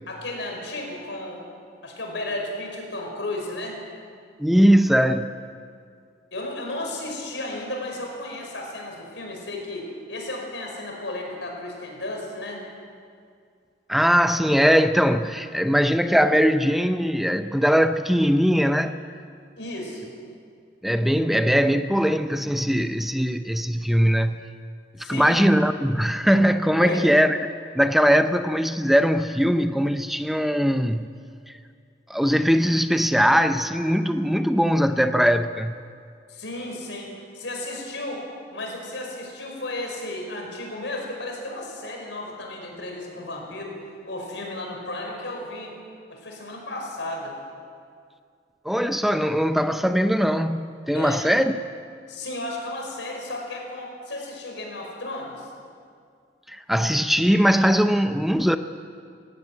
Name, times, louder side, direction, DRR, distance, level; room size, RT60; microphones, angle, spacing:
voice 1, 0.1-1.4 1.8-3.8 6.3-12.6 19.6-20.1 25.0-25.4 26.8-27.0 36.3-38.2 38.5-43.8 44.0-45.8 46.1-47.4 50.9-51.2 52.1-55.5, left 1 dB, 85° left, 5.5 m, -33 dB
voice 2, 4.4-5.3 13.9-18.9 20.8-24.5 25.0-27.4 27.7-31.1 31.5-31.6 32.1-35.8 48.6-51.6 56.5-58.6, equal, ahead, 0.5 m, -20 dB
19.0 x 16.0 x 9.4 m
head